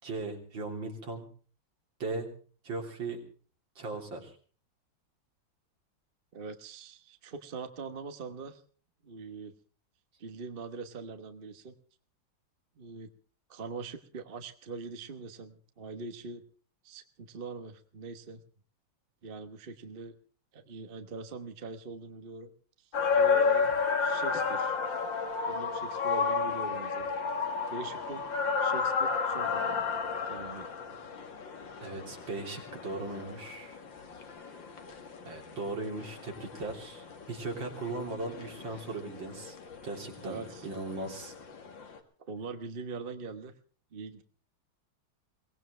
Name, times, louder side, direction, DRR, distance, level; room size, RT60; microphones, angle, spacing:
voice 1, 0.0-1.3 2.0-2.3 2.6-3.2 3.8-4.3 31.8-33.8 35.2-39.6 39.8-41.3, right 3 dB, 70° right, 1 dB, 4.1 m, -38 dB
voice 2, 6.3-8.6 9.0-9.5 10.2-11.7 12.8-13.1 13.5-16.4 16.8-18.4 19.2-20.1 20.5-22.5 22.8-22.9 23.1-24.8 25.5-27.1 27.7-28.2 28.6-29.8 30.2-30.7 40.2-40.7 42.3-43.5 43.9-44.2, right 4 dB, 35° right, 8 dB, 1.1 m, -42 dB
sound 1, 22.9-42.0, left 5 dB, 70° left, 2.6 m, -32 dB
23.0 x 18.5 x 3.3 m, 0.41 s
omnidirectional pair, 2.1 m